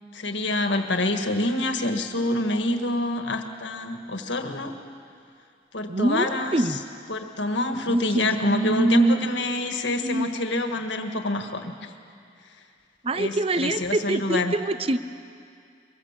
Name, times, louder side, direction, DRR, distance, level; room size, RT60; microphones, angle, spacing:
voice 1, 0.1-4.7 5.7-6.6 7.1-11.9 13.1-14.5, left 2 dB, 80° left, 6 dB, 1.7 m, -26 dB
voice 2, 5.9-6.8 7.9-9.3 10.0-10.3 13.0-15.0, right 2 dB, 30° right, 13 dB, 0.6 m, -25 dB
23.0 x 20.5 x 7.4 m, 2.3 s
head